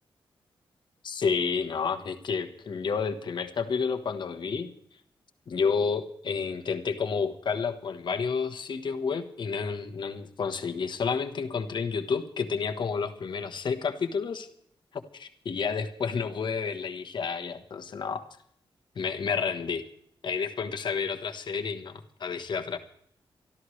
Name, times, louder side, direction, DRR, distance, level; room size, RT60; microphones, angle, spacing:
voice 1, 1.0-4.7 5.5-14.5 14.9-18.3 18.9-19.8 20.2-22.8, left 5 dB, 55° left, 7 dB, 1.3 m, -30 dB
24.0 x 13.5 x 3.3 m, 0.69 s
wide cardioid pair, 155°, 9 cm